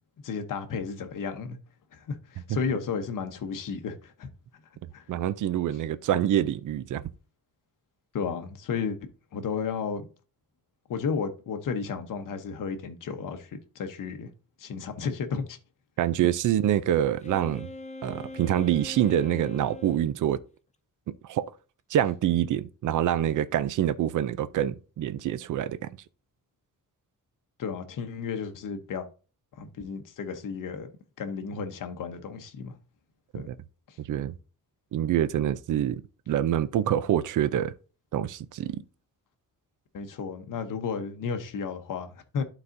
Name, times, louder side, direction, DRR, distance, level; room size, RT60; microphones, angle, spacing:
voice 1, 0.2-1.6 1.9-4.3 4.9-5.0 8.1-9.0 9.3-10.0 10.9-14.3 14.6-15.6 27.6-29.1 29.6-30.9 31.2-32.7 33.3-33.5 39.9-42.4, left 5 dB, 65° left, 0.9 m, -33 dB
voice 2, 5.1-7.0 16.0-17.7 18.0-20.4 21.2-21.5 21.9-25.9 33.3-33.5 34.0-34.4 34.9-37.7 38.1-38.8, right 11 dB, 60° right, 0.5 m, -26 dB
Wind instrument woodwind instrument, 17.2-20.1, left 2 dB, 20° left, 0.4 m, -41 dB
12.0 x 4.1 x 2.6 m
wide cardioid pair, 145°, 34 cm